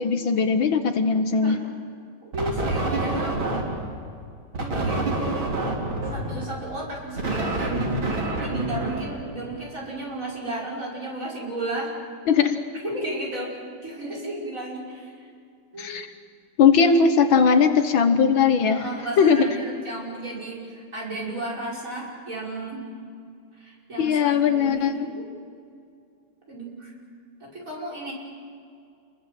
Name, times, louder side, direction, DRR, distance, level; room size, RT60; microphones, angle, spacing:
voice 1, 0.0-1.6 12.3-12.6 15.8-16.1 16.6-18.9 19.2-19.5 24.0-25.1, left 6 dB, 70° left, 9 dB, 1.8 m, -19 dB
voice 2, 2.2-3.4 4.6-5.2 6.1-12.0 12.8-15.3 15.7-16.0 18.7-22.8 23.5-25.2 26.5-26.9 27.4-28.1, right 2 dB, 35° right, -2 dB, 6.1 m, -34 dB
sound 1, 2.3-4.0 4.5-9.7, right 2 dB, 70° right, 4.2 m, -27 dB
29.0 x 22.0 x 7.6 m, 2.4 s
omnidirectional pair, 2.3 m